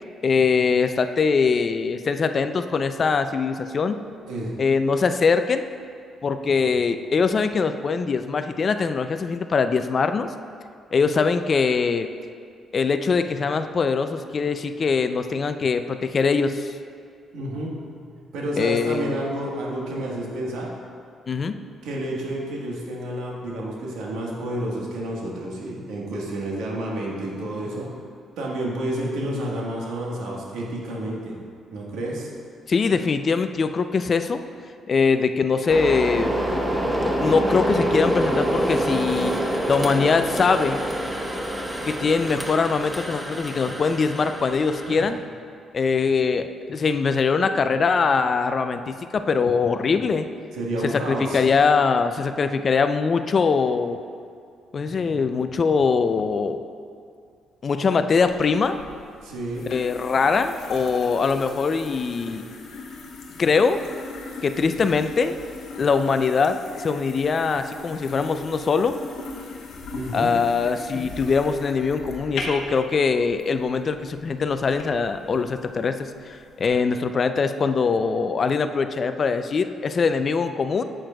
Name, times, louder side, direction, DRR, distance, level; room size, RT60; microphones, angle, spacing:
voice 1, 0.2-4.0 4.6-5.7 6.2-10.3 10.9-12.1 12.7-16.7 18.6-19.2 21.3-21.6 32.7-34.4 34.9-36.4 37.2-39.3 39.7-40.8 41.9-45.2 45.7-50.3 50.8-54.0 54.7-56.6 57.6-58.8 59.7-62.4 63.4-63.8 64.4-65.4 65.8-69.0 70.1-80.8, left 5 dB, 45° left, 9 dB, 0.3 m, -22 dB
voice 2, 17.3-20.7 21.8-27.9 28.4-31.4 31.7-32.3 44.8-45.0 50.5-51.4 59.2-59.7 69.9-70.3, right 1 dB, 85° right, -2 dB, 1.3 m, -30 dB
sound 1, 35.7-45.1, equal, 5° right, 0.8 m, -26 dB
sound 2, 58.3-76.7, left 3 dB, 75° left, 0.9 m, -39 dB
8.6 x 7.8 x 2.3 m, 2.3 s
cardioid pair, 90°, 0 cm